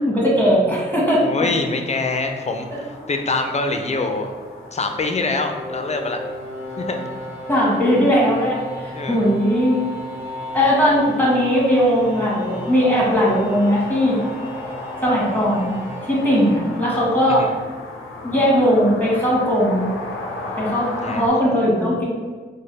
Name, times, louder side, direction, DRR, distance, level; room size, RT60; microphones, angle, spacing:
voice 1, 0.0-1.3 7.5-9.8 10.5-14.2 15.0-15.8 16.1-17.5 18.2-19.9 20.5-22.0, equal, 10° left, -5 dB, 1.4 m, -18 dB
voice 2, 1.2-4.3 4.7-6.2 6.8-7.0 8.9-9.2 17.3-17.5 21.0-21.5, left 3 dB, 35° left, 5 dB, 0.5 m, -25 dB
sound 1, 1.6-21.3, left 2 dB, 85° left, 0.5 m, -36 dB
sound 2, 4.6-17.6, equal, 10° right, 1.1 m, -35 dB
3.8 x 2.1 x 3.3 m, 1.5 s
cardioid pair, 40°, 21 cm